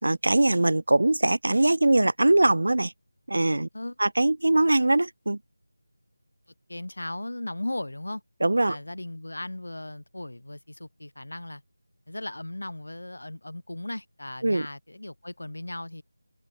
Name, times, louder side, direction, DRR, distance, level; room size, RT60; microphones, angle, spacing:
voice 1, 0.0-2.9 3.3-3.7 4.0-5.4 8.4-8.8 14.4-14.7, right 2 dB, 70° right, 0.8 m, -22 dB
voice 2, 6.7-8.2 8.7-11.6 12.1-16.0, left 1 dB, 85° left, 2.3 m, -37 dB
figure-of-eight pair, 170°, 0 cm